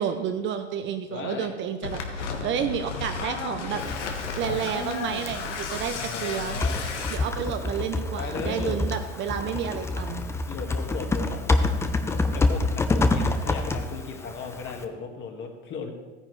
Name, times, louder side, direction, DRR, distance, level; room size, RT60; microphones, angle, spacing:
voice 1, 0.0-3.8 4.4-6.6 7.1-10.2, right 8 dB, 35° right, 7 dB, 0.7 m, -30 dB
voice 2, 1.1-1.5 4.4-4.6 5.9-7.1 8.1-8.8 10.5-11.7 12.1-15.9, left 5 dB, 35° left, 3 dB, 1.7 m, -36 dB
sound 1, 1.8-7.2, left 5 dB, 85° left, 1.6 m, -33 dB
Typing, 3.8-14.8, left 2 dB, 10° left, 0.5 m, -28 dB
13.5 x 9.8 x 3.3 m, 1.2 s
hypercardioid pair, 115°, 35 cm